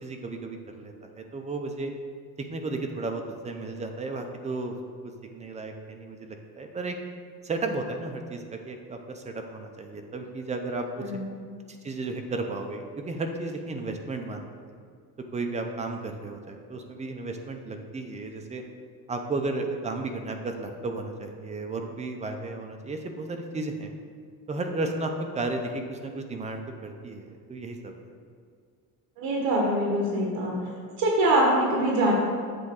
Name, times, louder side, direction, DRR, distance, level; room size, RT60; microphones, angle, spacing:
voice 1, 0.0-1.9 2.5-4.7 5.0-6.9 7.4-10.9 11.7-14.5 15.3-18.6 19.1-23.9 24.5-27.9, right 3 dB, 20° right, 4 dB, 0.6 m, -34 dB
voice 2, 11.0-11.3 29.2-30.6 31.0-32.1, right 1 dB, 60° right, -2 dB, 1.4 m, -24 dB
7.7 x 3.5 x 6.5 m, 2.1 s
cardioid pair, 145°, 37 cm